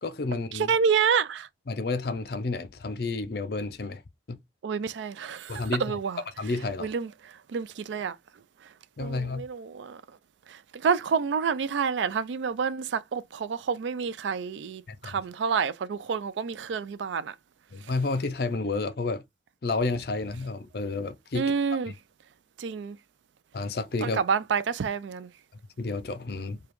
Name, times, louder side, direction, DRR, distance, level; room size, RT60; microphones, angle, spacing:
voice 1, 0.0-0.7 1.7-4.0 4.3-4.4 5.5-6.0 6.4-6.9 9.0-9.5 14.9-15.2 17.7-19.2 19.6-21.5 23.5-24.2 25.8-26.6, left 3 dB, 55° left, 0.5 m, -30 dB
voice 2, 0.5-1.5 4.6-6.2 6.8-8.2 9.0-10.0 10.5-17.3 21.3-21.9 22.6-23.0 24.0-25.3, right 6 dB, 80° right, 0.4 m, -28 dB
5.0 x 2.3 x 3.0 m
head